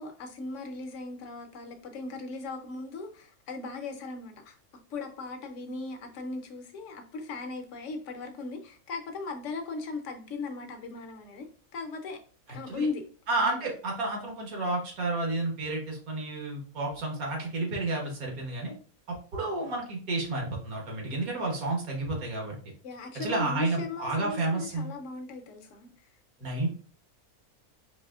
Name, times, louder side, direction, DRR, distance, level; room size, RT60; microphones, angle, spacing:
voice 1, 0.0-4.6 4.9-11.5 11.7-12.2 12.5-13.0 13.4-13.7 22.8-25.9, left 3 dB, 60° left, 5 dB, 1.0 m, -38 dB
voice 2, 13.3-18.7 19.1-22.6 23.1-24.9 26.4-26.7, right 2 dB, 75° right, -1 dB, 1.7 m, -31 dB
4.8 x 3.0 x 2.3 m, 0.41 s
omnidirectional pair, 1.6 m